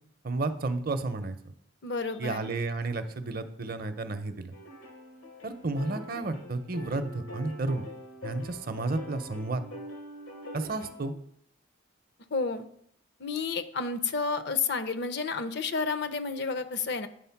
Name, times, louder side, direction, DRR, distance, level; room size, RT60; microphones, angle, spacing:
voice 1, 0.2-1.4 2.2-4.5 5.4-7.8 8.2-9.6 10.5-11.1, right 2 dB, 45° right, 9 dB, 0.6 m, -32 dB
voice 2, 1.8-2.6 12.3-12.7 13.2-17.1, left 4 dB, 55° left, 10 dB, 0.6 m, -31 dB
sound 1, 4.5-11.1, left 1 dB, 85° left, 1.4 m, -44 dB
9.2 x 3.8 x 5.7 m, 0.69 s
head